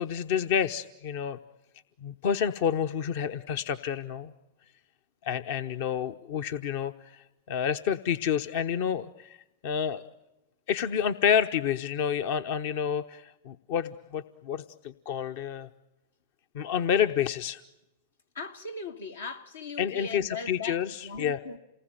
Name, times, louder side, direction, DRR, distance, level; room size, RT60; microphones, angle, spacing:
voice 1, 0.0-1.4 2.0-4.3 5.2-9.4 9.6-10.0 10.7-15.7 16.5-17.6 19.8-21.4, left 8 dB, 60° left, 0.9 m, -29 dB
voice 2, 18.4-21.6, left 4 dB, 85° left, 1.9 m, -39 dB
28.5 x 19.5 x 9.1 m
hypercardioid pair, 100°, 0 cm